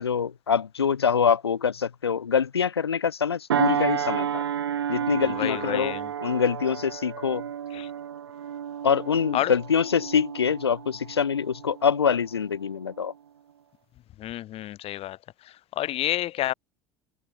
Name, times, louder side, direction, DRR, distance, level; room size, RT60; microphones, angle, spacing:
voice 1, 0.0-4.4 4.9-7.4 8.8-13.1, left 7 dB, 85° left, 0.7 m, -25 dB
sound 1, 3.5-12.3 12.8-13.0, right 9 dB, 80° right, 1.5 m, -31 dB
voice 2, 5.3-6.1 7.7-7.9 9.3-9.5 14.2-16.5, left 14 dB, 50° left, 3.0 m, -30 dB
figure-of-eight pair, 70°, 13 cm